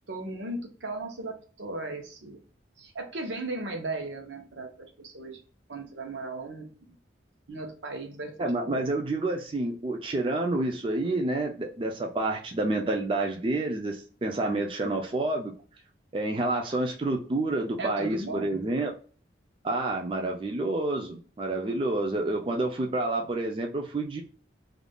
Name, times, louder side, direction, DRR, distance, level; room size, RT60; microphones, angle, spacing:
voice 1, 0.0-2.4 2.8-5.4 5.7-6.7 7.5-8.8 17.8-18.7, right 2 dB, 75° right, 3 dB, 0.8 m, -37 dB
voice 2, 8.4-15.5 16.1-18.9 19.6-24.2, right 2 dB, 30° right, 1 dB, 0.3 m, -29 dB
3.5 x 2.4 x 2.2 m, 0.40 s
head